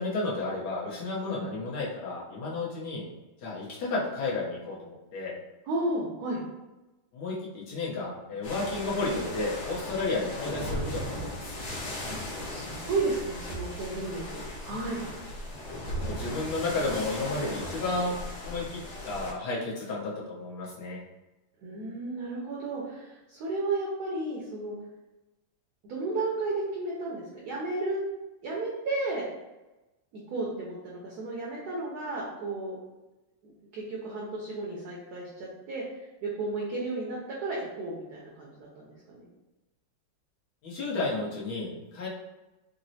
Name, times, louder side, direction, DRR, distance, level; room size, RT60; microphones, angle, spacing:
voice 1, 0.0-3.1 3.4-5.3 7.1-11.5 16.0-18.1 18.4-21.0 40.6-42.1, left 3 dB, 65° left, -5 dB, 1.3 m, -32 dB
voice 2, 5.7-6.4 12.1-12.2 12.5-15.0 21.6-24.7 25.8-28.0 28.4-29.3 30.3-32.7 33.7-35.8 36.2-39.3, right 2 dB, 70° right, -4 dB, 0.9 m, -33 dB
sound 1, 8.4-19.3, left 1 dB, 85° left, 1.6 m, -37 dB
3.9 x 2.0 x 2.6 m, 1.1 s
omnidirectional pair, 2.2 m